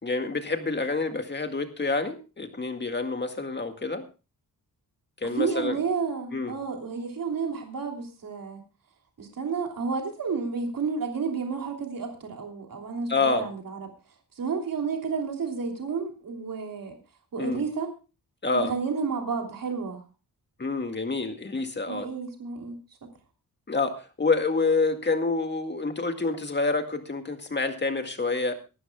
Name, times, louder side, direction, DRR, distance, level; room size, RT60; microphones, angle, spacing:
voice 1, 0.0-4.1 5.2-5.8 6.3-6.5 13.1-13.5 17.4-17.6 18.4-18.7 20.6-22.1 23.7-28.5, left 3 dB, 30° left, 6 dB, 2.0 m, -27 dB
voice 2, 5.2-8.6 9.2-13.9 14.4-16.9 17.3-17.9 18.5-20.0 21.9-22.7, right 5 dB, 70° right, 2 dB, 3.2 m, -31 dB
24.0 x 12.5 x 2.3 m, 0.32 s
wide cardioid pair, 140°, 35 cm